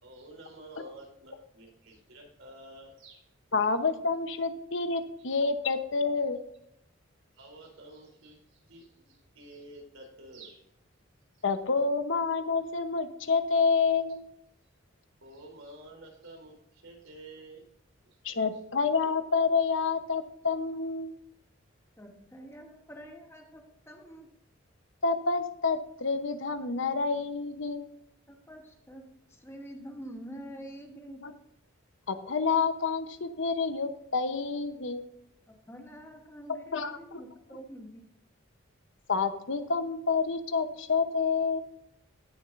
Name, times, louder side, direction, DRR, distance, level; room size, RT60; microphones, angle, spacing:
voice 1, 0.0-3.3 5.2-5.3 7.4-10.6 15.2-17.7 18.3-18.4, right 1 dB, 80° right, 1 dB, 3.5 m, -50 dB
voice 2, 3.5-6.4 11.4-14.2 18.2-21.1 25.0-27.9 31.2-31.3 32.1-35.0 36.7-37.2 39.1-41.6, left 4 dB, 70° left, 9 dB, 0.9 m, -28 dB
voice 3, 22.0-24.3 28.3-31.3 35.5-38.1, equal, 10° left, 3 dB, 1.1 m, -46 dB
17.0 x 7.1 x 2.6 m, 0.75 s
head